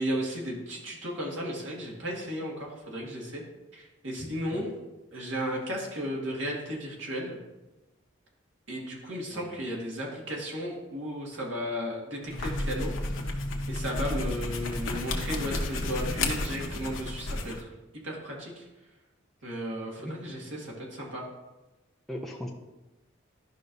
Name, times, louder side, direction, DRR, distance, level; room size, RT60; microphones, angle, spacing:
voice 1, 0.0-3.4 3.7-4.7 5.1-7.4 8.7-12.9 13.7-17.7 18.0-18.6 19.4-21.3, equal, 70° right, -3 dB, 2.0 m, -34 dB
sound 1, 12.2-17.6, left 2 dB, 85° left, 1.0 m, -32 dB
voice 2, 22.1-22.5, equal, ahead, -1 dB, 0.6 m, -38 dB
12.0 x 5.3 x 2.7 m, 1.1 s
head